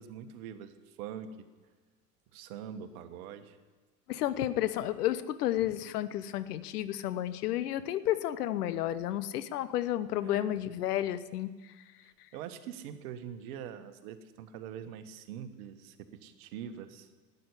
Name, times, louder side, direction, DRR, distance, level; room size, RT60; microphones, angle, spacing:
voice 1, 0.0-1.5 2.3-3.6 10.2-10.6 12.0-17.1, right 8 dB, 60° right, 10 dB, 1.5 m, -44 dB
voice 2, 4.1-11.8 12.2-12.3, left 12 dB, 70° left, 14 dB, 1.0 m, -32 dB
12.5 x 9.7 x 9.8 m, 1.3 s
hypercardioid pair, 85°, 48 cm